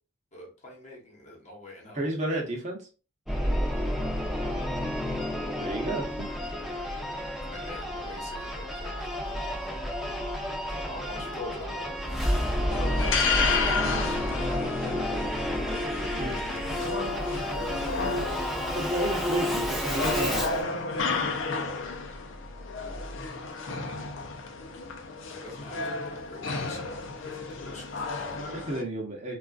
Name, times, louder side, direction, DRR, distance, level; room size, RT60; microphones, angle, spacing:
voice 1, 0.3-2.1 3.7-4.0 7.1-9.8 10.7-12.2 13.9-15.3 17.5-18.2 25.3-28.4, left 1 dB, 35° left, -1 dB, 1.1 m, -45 dB
voice 2, 1.9-2.9 5.6-6.3 10.9-11.0 11.7-12.1 12.8-13.1 16.2-16.4 18.7-21.3 28.5-29.4, right 1 dB, 35° right, -1 dB, 0.9 m, -33 dB
Singing / Musical instrument, 3.3-20.6, left 1 dB, ahead, 0.8 m, -30 dB
sound 1, 12.7-28.8, left 4 dB, 70° left, 0.5 m, -32 dB
3.7 x 2.4 x 2.4 m, 0.35 s
head